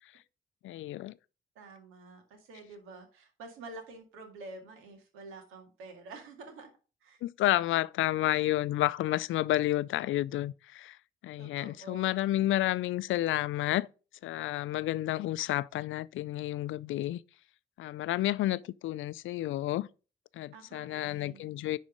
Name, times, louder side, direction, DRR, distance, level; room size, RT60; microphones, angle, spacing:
voice 1, 0.6-1.1 7.2-11.0 11.2-13.9 14.2-17.2 17.8-19.9 20.4-21.8, left 15 dB, 75° left, 0.4 m, -30 dB
voice 2, 1.6-6.7 7.0-7.2 11.4-12.3 20.5-21.7, right 3 dB, 85° right, 2.1 m, -48 dB
10.5 x 4.2 x 5.0 m
hypercardioid pair, 45°, 21 cm